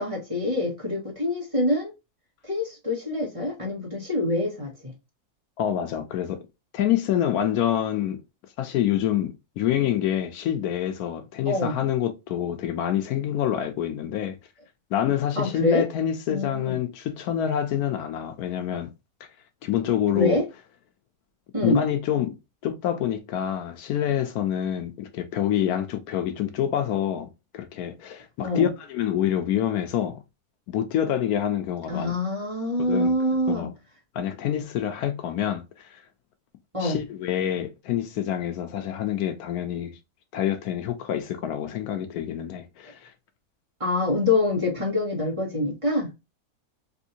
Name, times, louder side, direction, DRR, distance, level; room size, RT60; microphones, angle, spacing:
voice 1, 0.0-1.9 2.4-4.9 11.4-11.8 15.3-15.9 16.3-16.7 20.1-20.4 21.5-21.8 28.4-28.7 31.9-33.7 36.7-37.0 43.8-46.1, left 2 dB, 25° right, 1.3 m, -25 dB
voice 2, 5.6-6.5 6.7-8.2 8.6-14.4 14.9-18.9 19.6-20.4 21.6-22.3 22.6-27.3 27.5-30.2 30.7-32.1 32.8-33.1 33.5-33.7 34.1-36.0 36.8-40.0 40.3-43.1, left 10 dB, 80° left, 1.1 m, -27 dB
3.4 x 2.6 x 2.7 m
omnidirectional pair, 1.6 m